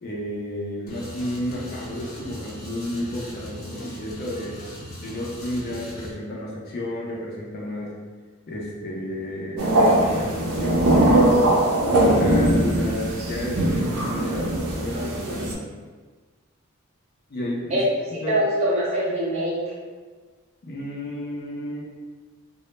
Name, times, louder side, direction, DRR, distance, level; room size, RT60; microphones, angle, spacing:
voice 1, 0.0-4.6 5.0-7.9 8.5-11.3 11.8-15.6 17.3-17.8 18.2-18.4 20.6-21.8, left 1 dB, 50° left, -3 dB, 0.4 m, -32 dB
sound 1, 0.9-6.1, equal, 85° left, 0.8 m, -39 dB
sound 2, 9.6-15.5, right 1 dB, 90° right, 0.4 m, -20 dB
voice 2, 18.3-19.7, right 1 dB, 30° right, -7 dB, 0.7 m, -23 dB
2.0 x 2.0 x 3.0 m, 1.4 s
head